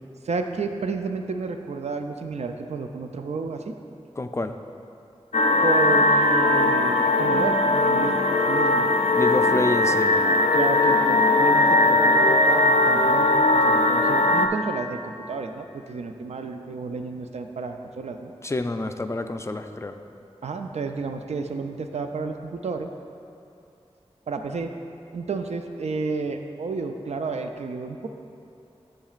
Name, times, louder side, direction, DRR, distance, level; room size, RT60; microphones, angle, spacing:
voice 1, 0.2-3.7 5.6-8.9 10.5-18.3 20.4-22.9 24.3-24.7 25.1-28.1, right 4 dB, 85° right, 6 dB, 0.4 m, -31 dB
voice 2, 4.2-4.6 9.1-10.1 18.4-19.9, left 2 dB, 25° left, 7 dB, 0.3 m, -28 dB
sound 1, 5.3-14.5, left 2 dB, 85° left, 0.4 m, -19 dB
10.0 x 7.4 x 2.4 m, 2.6 s
wide cardioid pair, 75°, 11 cm